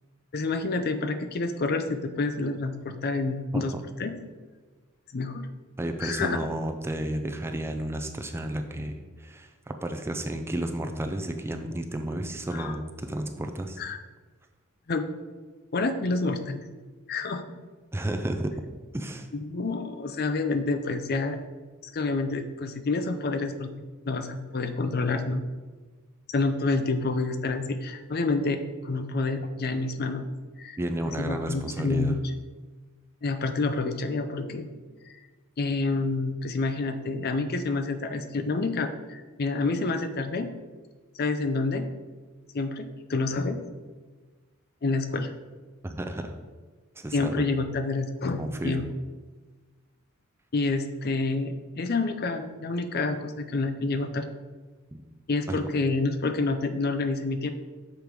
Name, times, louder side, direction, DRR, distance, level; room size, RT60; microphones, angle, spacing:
voice 1, 0.3-3.7 4.0-4.1 5.1-5.4 6.0-6.5 12.5-12.8 13.8-14.0 14.9-15.1 15.7-16.7 17.1-17.7 19.3-21.4 21.9-23.7 24.0-25.5 26.3-30.2 30.6-30.8 31.0-32.2 33.2-34.7 35.6-40.5 41.2-41.8 42.5-43.6 44.8-45.3 47.1-48.9 50.5-54.3 55.3-57.5, left 3 dB, 45° left, 9 dB, 0.5 m, -28 dB
voice 2, 5.8-8.9 9.2-13.8 17.9-18.5 18.9-19.3 30.8-32.2 45.8-46.4 47.0-47.4 48.4-48.9 54.9-55.0 55.5-55.6, right 1 dB, 10° right, 5 dB, 0.4 m, -32 dB
6.8 x 5.2 x 4.6 m, 1.3 s
head